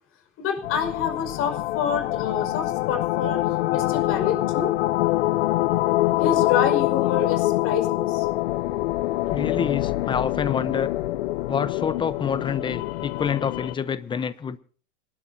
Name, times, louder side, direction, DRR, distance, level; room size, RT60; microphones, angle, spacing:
voice 1, 0.4-3.4 3.7-4.7 6.2-8.3, left 7 dB, 40° left, 5.5 m, -27 dB
sound 1, 0.6-13.7, left 17 dB, 70° left, 0.9 m, -25 dB
voice 2, 9.3-10.9 11.5-14.6, left 7 dB, 15° left, 0.8 m, -27 dB
26.5 x 12.0 x 2.8 m
supercardioid pair, 135°, 35 cm